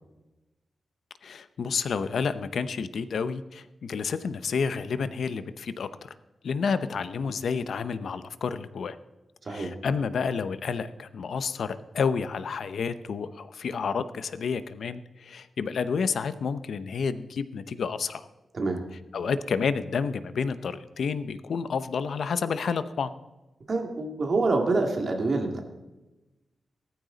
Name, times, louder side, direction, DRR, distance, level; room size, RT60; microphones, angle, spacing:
voice 1, 1.2-6.1 6.4-9.0 9.5-18.3 19.1-23.1, left 5 dB, 70° left, 12 dB, 0.7 m, -30 dB
voice 2, 9.4-9.7 18.5-18.8 23.7-25.6, right 3 dB, 40° right, 3 dB, 2.4 m, -26 dB
17.5 x 14.0 x 4.0 m, 1.0 s
wide cardioid pair, 165°, 0 cm